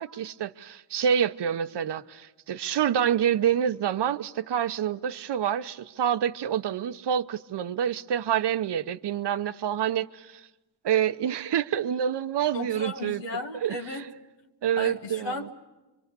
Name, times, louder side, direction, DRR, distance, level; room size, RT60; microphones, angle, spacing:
voice 1, 0.0-10.5 10.8-13.2 13.6-13.8 14.6-15.5, right 9 dB, 70° right, 0.8 m, -27 dB
voice 2, 12.5-14.1 14.8-15.5, left 2 dB, 90° left, 1.5 m, -35 dB
26.5 x 24.0 x 6.8 m
cardioid pair, 70°, 43 cm